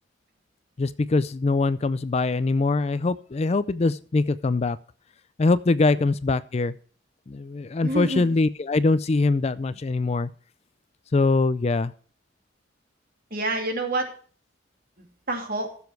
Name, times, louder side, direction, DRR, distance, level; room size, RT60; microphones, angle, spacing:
voice 1, 0.8-4.8 5.4-6.8 7.3-10.3 11.1-11.9, left 3 dB, 35° left, 16 dB, 0.4 m, -23 dB
voice 2, 7.8-8.3 13.3-14.1 15.0-15.7, right 2 dB, 50° right, 4 dB, 2.7 m, -28 dB
15.0 x 7.1 x 4.6 m, 0.43 s
head